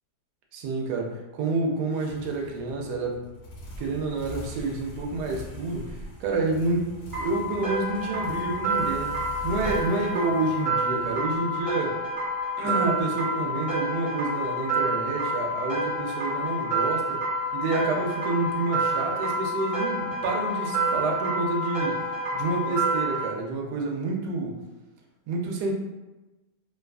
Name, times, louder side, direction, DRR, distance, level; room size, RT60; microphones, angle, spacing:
voice 1, 0.5-3.2 3.8-6.9 7.2-9.1 9.4-12.0 12.6-17.2 17.5-22.0 22.3-24.6 25.3-25.7, right 3 dB, 90° right, 0 dB, 1.2 m, -28 dB
sound 1, 1.9-11.7, equal, 70° left, 1.1 m, -42 dB
sound 2, 7.1-23.3, right 1 dB, 25° right, 0.7 m, -28 dB
2.9 x 2.3 x 2.3 m, 1.1 s
omnidirectional pair, 1.7 m